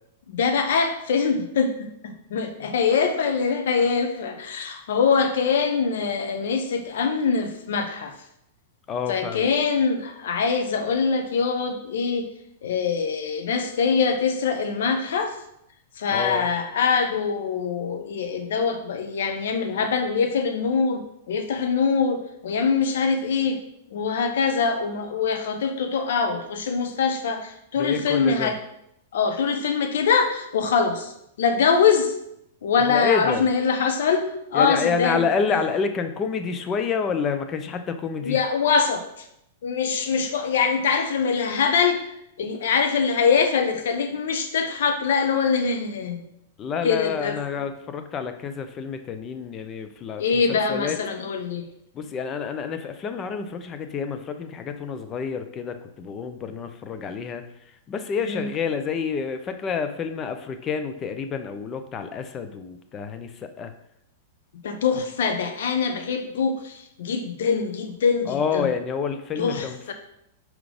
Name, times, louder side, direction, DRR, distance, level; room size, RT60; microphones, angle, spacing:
voice 1, 0.3-8.1 9.1-12.3 12.6-15.3 16.0-23.6 23.9-28.6 29.1-31.1 31.4-32.1 32.6-35.2 38.2-39.0 39.6-46.2 46.8-47.4 50.2-51.7 58.2-58.5 64.6-68.7 69.4-69.9, left 5 dB, 70° left, 6 dB, 0.8 m, -23 dB
voice 2, 8.9-9.5 16.1-16.5 27.8-28.6 32.9-33.5 34.5-38.4 46.6-51.0 51.9-57.5 57.9-63.7 68.3-69.9, left 6 dB, 30° left, 8 dB, 0.6 m, -28 dB
4.7 x 3.9 x 5.1 m, 0.79 s
hypercardioid pair, 110°, 0 cm